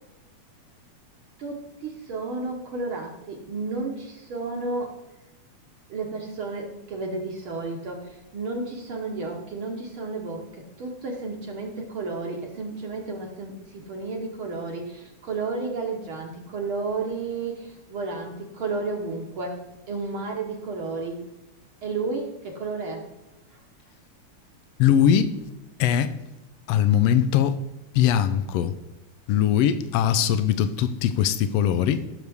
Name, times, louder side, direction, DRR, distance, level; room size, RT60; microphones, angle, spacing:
voice 1, 1.4-4.9 5.9-19.6 19.9-21.2 21.8-23.1, right 3 dB, 55° right, 1 dB, 1.6 m, -32 dB
voice 2, 24.8-25.4 25.8-26.2 26.7-27.6 27.9-28.7 29.3-32.0, left 9 dB, 80° left, 12 dB, 1.5 m, -21 dB
15.5 x 6.6 x 3.5 m, 0.95 s
omnidirectional pair, 3.3 m